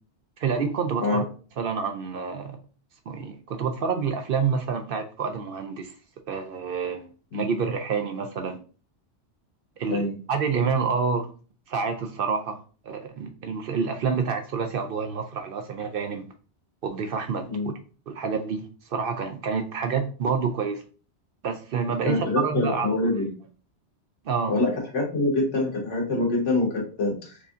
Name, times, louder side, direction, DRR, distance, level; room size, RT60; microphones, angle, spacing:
voice 1, 0.4-1.2 1.6-2.6 3.1-5.9 6.3-8.6 9.8-10.0 10.3-11.3 11.7-12.6 12.8-16.3 16.8-17.7 18.1-20.8 21.4-22.9 24.2-24.5, right 5 dB, 60° right, 6 dB, 0.6 m, -28 dB
voice 2, 22.0-23.3 24.5-27.3, left 2 dB, 85° left, -1 dB, 1.5 m, -25 dB
4.8 x 2.6 x 2.4 m, 0.38 s
omnidirectional pair, 1.2 m